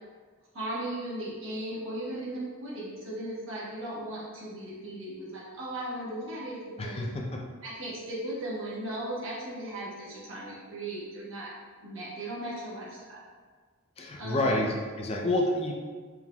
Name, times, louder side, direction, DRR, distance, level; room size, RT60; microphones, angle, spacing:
voice 1, 0.5-7.0 7.6-11.5 11.8-13.2 14.2-14.6, right 1 dB, 65° right, -7 dB, 1.3 m, -37 dB
voice 2, 6.8-7.4 14.0-15.7, left 1 dB, 30° left, 0 dB, 0.4 m, -29 dB
4.5 x 3.5 x 2.2 m, 1.5 s
head